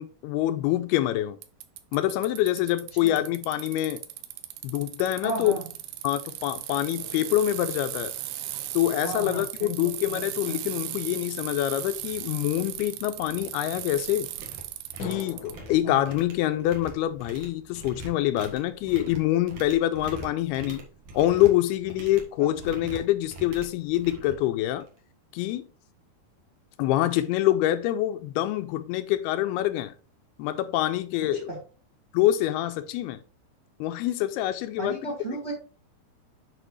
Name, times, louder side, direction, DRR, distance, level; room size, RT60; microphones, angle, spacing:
voice 1, 0.0-1.4 1.9-4.0 4.6-5.6 6.0-8.1 8.7-14.3 15.0-20.8 21.1-24.9 25.3-25.7 26.8-29.9 30.4-31.5 32.1-33.2 33.8-35.0, left 14 dB, 80° left, 2.4 m, -25 dB
Bicycle, 1.4-15.5, right 14 dB, 80° right, 2.5 m, -37 dB
voice 2, 5.2-5.6 9.0-10.6 15.8-16.1 22.4-22.7 31.3-31.6 34.8-35.5, right 2 dB, 40° right, 0.9 m, -35 dB
sound 1, 7.0-10.1 15.0-18.6, left 4 dB, 60° left, 1.3 m, -46 dB
sound 2, 10.9-11.0 11.4-11.6 11.9-12.2 12.5-13.5 13.7-25.0, right 3 dB, 55° right, 2.5 m, -44 dB
10.0 x 4.9 x 3.1 m
omnidirectional pair, 4.7 m